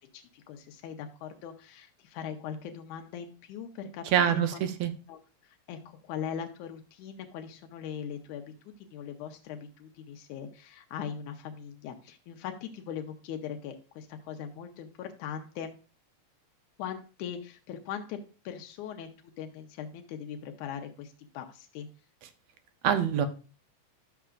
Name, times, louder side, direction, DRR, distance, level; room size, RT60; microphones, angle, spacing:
voice 1, 0.0-4.4 5.1-15.7 16.8-18.2 18.4-21.9, left 8 dB, 90° left, 5 dB, 2.4 m, -40 dB
voice 2, 4.1-4.9 22.8-23.3, right 9 dB, 70° right, 10 dB, 1.9 m, -25 dB
11.5 x 7.0 x 2.5 m, 0.36 s
omnidirectional pair, 3.4 m